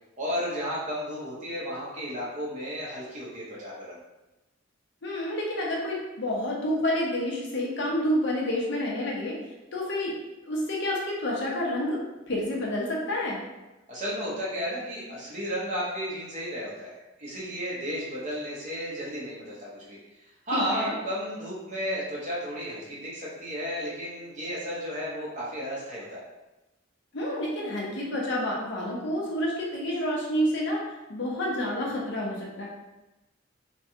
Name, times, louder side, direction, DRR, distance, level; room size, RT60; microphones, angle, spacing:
voice 1, 0.2-4.0 13.9-16.9 17.2-20.0 20.5-26.2, equal, 40° right, -6 dB, 0.9 m, -33 dB
voice 2, 5.0-9.4 9.7-10.1 10.4-12.0 12.3-13.4 20.5-20.9 27.1-30.8 31.1-32.7, left 1 dB, 65° left, -3 dB, 0.7 m, -29 dB
3.3 x 2.2 x 2.7 m, 1.0 s
head